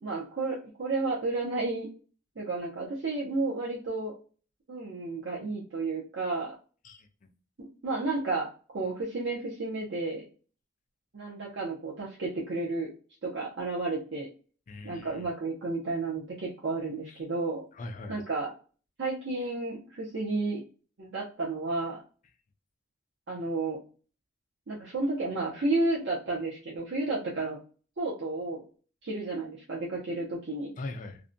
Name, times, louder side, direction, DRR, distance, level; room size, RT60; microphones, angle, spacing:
voice 1, 0.0-1.9 2.4-4.1 4.7-6.5 7.6-10.2 11.1-12.9 13.2-14.3 14.8-17.6 18.1-18.5 19.0-20.6 21.0-22.0 23.3-23.8 24.7-27.6 28.0-28.6 29.0-30.7, right 3 dB, 65° right, -4 dB, 0.6 m, -32 dB
voice 2, 6.8-7.3 14.7-15.2 17.1-17.2 17.7-18.2 30.8-31.2, left 2 dB, 40° left, 7 dB, 0.4 m, -41 dB
2.5 x 2.1 x 2.5 m, 0.38 s
head